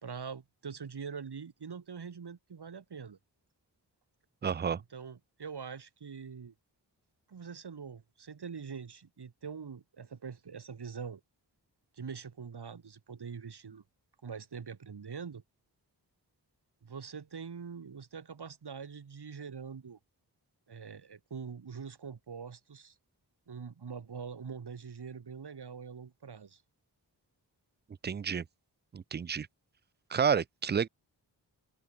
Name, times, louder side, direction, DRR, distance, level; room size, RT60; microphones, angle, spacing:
voice 1, 0.0-3.2 4.8-6.5 7.3-11.2 11.9-13.8 14.2-15.4 16.8-20.0 20.7-23.0 23.5-26.6, right 6 dB, 65° right, 2.2 m, -44 dB
voice 2, 4.4-4.8 28.0-28.4 28.9-29.5 30.1-30.9, right 7 dB, 25° right, 0.3 m, -30 dB
open air
cardioid pair, 50°, 42 cm